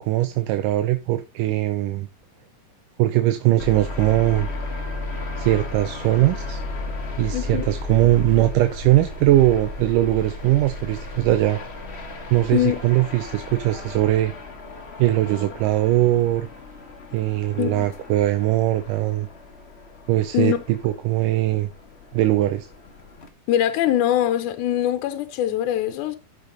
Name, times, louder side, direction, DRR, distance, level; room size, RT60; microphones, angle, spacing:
voice 1, 0.0-2.1 3.0-4.5 5.4-6.6 7.2-11.6 12.3-14.3 15.0-16.5 17.1-19.3 20.1-21.7 22.1-22.7, right 15 dB, 85° right, 2.3 m, -20 dB
sound 1, 3.6-23.3, left 3 dB, 35° left, 1.0 m, -35 dB
voice 2, 7.3-7.7 12.5-12.8 17.6-17.9 20.3-20.6 23.5-26.2, left 11 dB, 80° left, 2.3 m, -22 dB
13.5 x 5.2 x 4.0 m
omnidirectional pair, 3.7 m